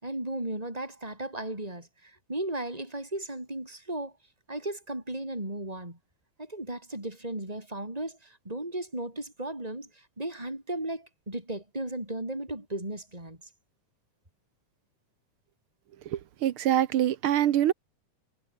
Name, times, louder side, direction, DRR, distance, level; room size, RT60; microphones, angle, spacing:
voice 1, 0.0-4.1 4.5-6.0 6.4-13.4, right 1 dB, 10° right, 8.0 m, -35 dB
voice 2, 16.1-17.7, right 11 dB, 70° right, 1.3 m, -25 dB
omnidirectional pair, 3.6 m